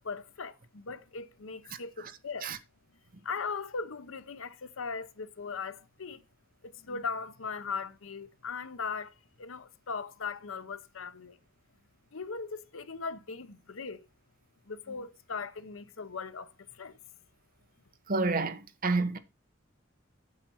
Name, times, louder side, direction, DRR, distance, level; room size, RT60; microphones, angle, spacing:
voice 1, 0.0-2.5 3.2-6.2 6.6-11.4 12.1-14.1 14.7-17.0, left 5 dB, 85° left, 0.8 m, -39 dB
voice 2, 1.7-2.1 2.4-2.6 18.1-19.2, right 3 dB, 45° right, 1.1 m, -30 dB
8.6 x 7.4 x 4.5 m
head